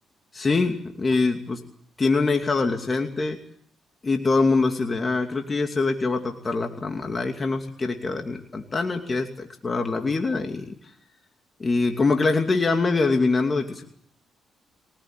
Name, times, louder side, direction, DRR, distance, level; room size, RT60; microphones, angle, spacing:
voice 1, 0.3-1.6 2.0-3.4 4.0-10.7 11.6-13.8, left 3 dB, 30° left, 4 dB, 2.6 m, -24 dB
23.5 x 19.5 x 9.1 m, 0.65 s
cardioid pair, 85°, 0 cm